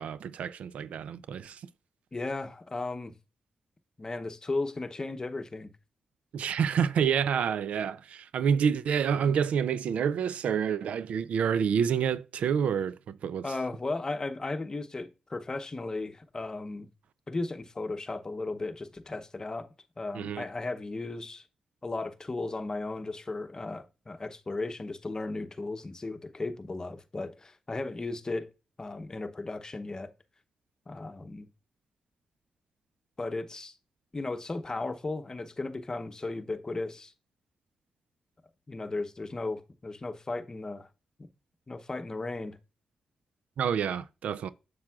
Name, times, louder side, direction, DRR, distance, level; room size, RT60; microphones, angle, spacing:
voice 1, 0.0-1.6 6.3-13.5 20.1-20.4 43.6-44.5, right 7 dB, 80° right, 0.3 m, -28 dB
voice 2, 2.1-3.1 4.0-5.7 13.4-16.9 17.3-19.7 20.0-21.4 21.8-28.5 28.8-30.1 30.9-31.5 33.2-33.7 34.1-37.1 38.7-40.9 41.7-42.6, left 3 dB, 30° left, 0.8 m, -35 dB
7.2 x 6.2 x 2.3 m
cardioid pair, 65°, 2 cm